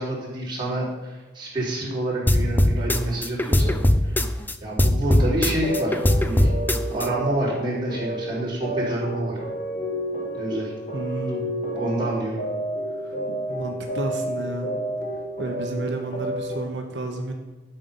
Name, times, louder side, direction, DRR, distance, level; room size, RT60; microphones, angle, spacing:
voice 1, 0.0-3.8 4.0-4.2 4.6-6.5 6.9-9.4 10.3-10.7 11.8-12.4, right 1 dB, 25° right, -6 dB, 3.5 m, -28 dB
sound 1, 2.3-4.5 4.8-7.1, left 1 dB, 10° left, 0.4 m, -20 dB
sound 2, 5.4-16.6, equal, 45° left, 2.0 m, -31 dB
voice 2, 10.9-11.5 13.0-13.1 13.5-14.7 15.4-17.3, right 2 dB, 85° right, 3 dB, 1.0 m, -31 dB
11.5 x 5.7 x 5.5 m, 1.2 s
head